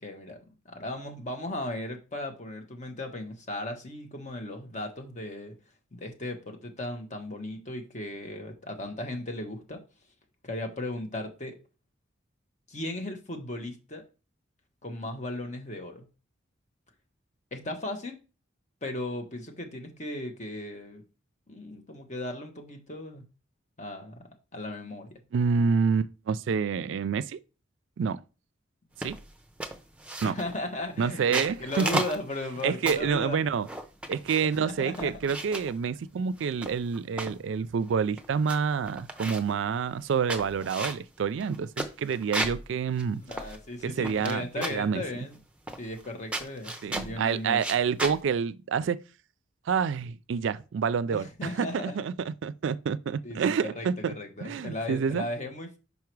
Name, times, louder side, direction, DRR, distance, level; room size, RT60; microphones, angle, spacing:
voice 1, 0.0-5.5 5.9-9.8 10.4-11.6 12.7-14.0 14.8-16.1 17.5-18.2 18.8-21.0 21.5-23.2 23.8-25.2 30.2-33.4 34.4-35.3 43.1-45.4 45.8-47.6 51.1-52.1 53.2-55.8, left 1 dB, 35° left, 1.2 m, -36 dB
voice 2, 25.3-27.4 28.0-28.2 29.0-29.2 30.2-30.4 31.0-32.0 32.6-33.7 34.1-43.2 43.8-45.0 46.8-49.0 49.7-54.1 54.4-55.3, right 6 dB, 70° right, 0.3 m, -28 dB
sound 1, 29.0-29.3 29.6-30.6 31.1-33.2 33.7-34.6 34.9-35.7 36.4-37.4 37.9-38.0 38.2-38.6 38.9-39.6 40.1-42.7 43.0-43.1 43.3-44.3 44.6-44.9 45.7-46.1 46.3-47.2 47.6-48.2, right 1 dB, 5° right, 0.7 m, -34 dB
5.4 x 4.8 x 4.6 m
head